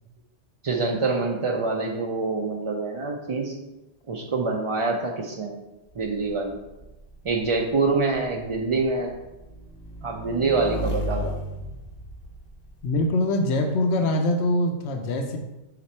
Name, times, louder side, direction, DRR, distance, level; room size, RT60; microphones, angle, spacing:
voice 1, 0.6-3.5 4.1-5.5 6.0-6.6 7.2-9.1 10.0-11.3, right 3 dB, 40° right, 0 dB, 0.4 m, -25 dB
Motorcycle / Engine, 5.9-13.0, equal, 45° left, 0.7 m, -35 dB
voice 2, 12.8-15.4, left 1 dB, 80° left, 5 dB, 0.9 m, -23 dB
5.9 x 3.9 x 4.3 m, 0.99 s
omnidirectional pair, 1.1 m